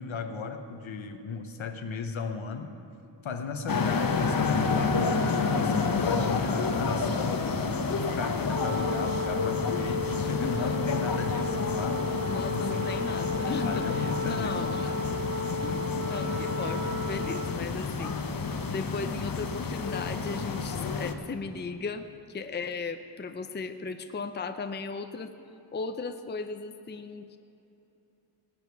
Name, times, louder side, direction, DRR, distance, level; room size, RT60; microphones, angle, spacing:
voice 1, 0.0-2.7 3.2-12.9 13.6-14.7 15.5-15.9, left 5 dB, 70° left, 7 dB, 1.0 m, -36 dB
sound 1, 3.7-21.1, left 4 dB, 45° left, 0.8 m, -30 dB
Wind instrument woodwind instrument, 8.4-17.7, left 3 dB, 35° right, 0.8 m, -33 dB
voice 2, 10.3-10.8 11.3-11.4 12.3-15.1 15.6-25.3 25.7-27.4, left 4 dB, 20° left, 8 dB, 0.5 m, -36 dB
18.0 x 8.8 x 4.7 m, 2.9 s
wide cardioid pair, 95°, 48 cm